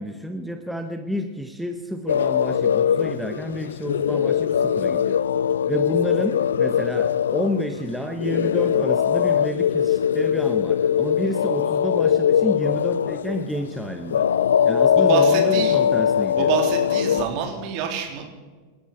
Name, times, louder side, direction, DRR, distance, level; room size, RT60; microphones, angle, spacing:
voice 1, 0.0-5.2 5.7-14.3 14.6-16.5, equal, ahead, 5 dB, 1.2 m, -30 dB
sound 1, 2.1-17.2, left 8 dB, 65° left, 0.4 m, -21 dB
voice 2, 15.0-15.8 16.4-18.3, right 6 dB, 45° right, 2 dB, 3.4 m, -26 dB
28.5 x 11.5 x 4.4 m, 1.4 s
figure-of-eight pair, 90°, 0 cm